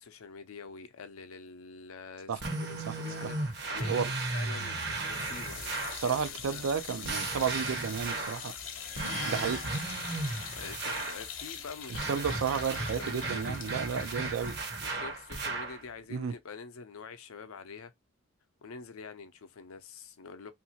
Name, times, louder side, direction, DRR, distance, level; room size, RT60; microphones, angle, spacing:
voice 1, 0.0-6.6 10.5-12.5 12.8-14.3 14.8-17.9 18.6-20.5, left 5 dB, 90° left, 0.5 m, -46 dB
sound 1, 2.4-6.1 7.0-8.5 9.0-11.2 11.9-15.8, right 2 dB, 55° right, 0.8 m, -35 dB
sound 2, 4.9-16.0, left 7 dB, 65° left, 0.8 m, -44 dB
voice 2, 5.9-8.6 9.2-9.6 12.1-14.6 16.1-16.3, right 6 dB, 85° right, 0.4 m, -32 dB
sound 3, 8.8-10.9, left 7 dB, 40° left, 0.5 m, -45 dB
2.8 x 2.5 x 2.7 m
head